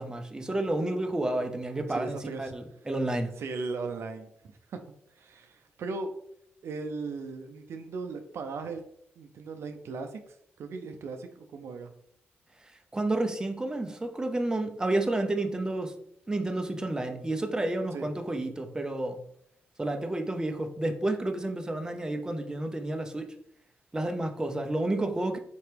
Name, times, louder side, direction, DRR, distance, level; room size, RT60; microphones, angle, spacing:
voice 1, 0.0-3.4 12.9-16.0 16.3-19.2 19.8-23.3 23.9-25.4, right 2 dB, 15° right, 5 dB, 0.6 m, -30 dB
voice 2, 1.9-2.5 3.4-4.3 4.7-4.8 5.2-6.1 6.6-8.8 9.2-11.9 17.9-18.1, right 4 dB, 70° right, 6 dB, 0.5 m, -37 dB
4.4 x 2.9 x 3.3 m, 0.71 s
cardioid pair, 75°, 5 cm